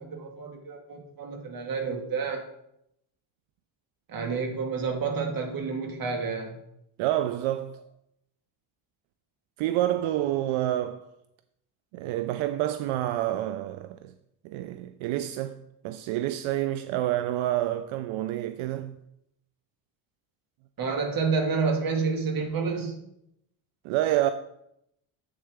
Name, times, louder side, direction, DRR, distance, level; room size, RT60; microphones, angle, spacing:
voice 1, 0.0-2.4 4.1-6.6 20.8-23.0, right 4 dB, 45° right, 1.8 m, -29 dB
voice 2, 7.0-7.8 9.6-11.0 11.9-14.1 14.4-15.6 15.8-19.0 23.8-24.3, right 13 dB, 85° right, 0.6 m, -28 dB
7.9 x 6.8 x 3.6 m
cardioid pair, 110°, 47 cm